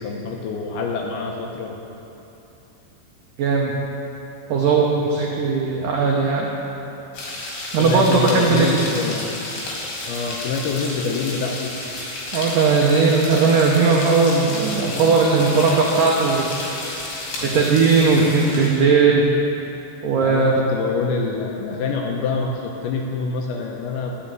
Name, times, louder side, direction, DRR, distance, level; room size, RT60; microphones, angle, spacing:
voice 1, 0.0-1.8 7.7-9.4 10.1-11.7 17.4-17.8 18.1-18.3 20.2-24.2, left 4 dB, 75° left, 0 dB, 2.4 m, -26 dB
voice 2, 3.4-3.7 4.5-6.5 7.7-8.9 12.3-16.5 17.4-19.2 20.0-20.6, right 4 dB, 85° right, -2 dB, 1.8 m, -18 dB
sound 1, 7.1-18.8, left 2 dB, 60° left, 4.2 m, -31 dB
13.5 x 6.4 x 8.7 m, 3.0 s
omnidirectional pair, 5.2 m